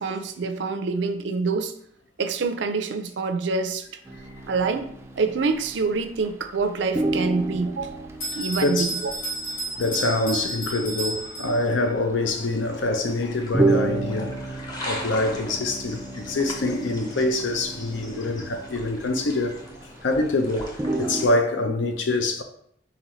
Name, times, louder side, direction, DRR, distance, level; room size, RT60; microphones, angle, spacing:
voice 1, 0.0-1.7 2.2-3.8 4.5-4.9 5.2-8.1 8.4-9.0, right 4 dB, 75° right, 0.5 m, -26 dB
sound 1, 4.1-6.3 6.6-6.7 6.9-20.2 20.5-21.3, right 2 dB, 15° right, 0.3 m, -31 dB
Bell, 8.2-11.9, right 1 dB, 50° left, 1.9 m, -32 dB
voice 2, 8.6-9.0 9.8-14.3 14.9-19.5 20.0-22.4, left 2 dB, 85° left, 0.6 m, -25 dB
sound 2, 12.4-21.3, left 1 dB, 20° left, 0.7 m, -41 dB
4.2 x 4.0 x 3.1 m
head